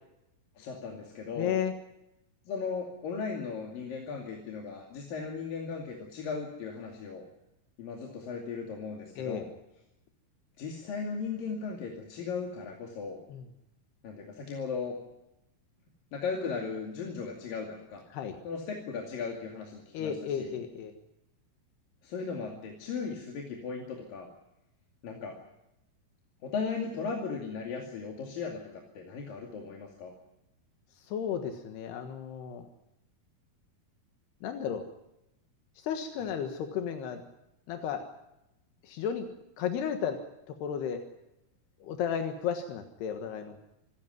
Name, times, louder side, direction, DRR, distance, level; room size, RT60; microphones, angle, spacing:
voice 1, 0.6-1.6 2.5-7.2 7.8-9.5 10.6-13.2 14.0-14.9 16.1-18.0 18.4-20.5 22.0-24.3 25.0-25.4 26.4-28.6 29.0-30.1 36.2-36.3, left 5 dB, 65° left, 0 dB, 4.1 m, -37 dB
voice 2, 1.4-1.7 9.2-9.5 13.3-13.5 18.1-18.4 19.9-20.9 31.0-32.7 34.4-34.8 35.8-37.2 37.7-38.0 38.8-39.3 39.6-40.2 40.6-41.0 41.8-43.6, left 8 dB, 85° left, 5 dB, 3.6 m, -33 dB
26.0 x 14.0 x 9.5 m, 0.89 s
omnidirectional pair, 4.5 m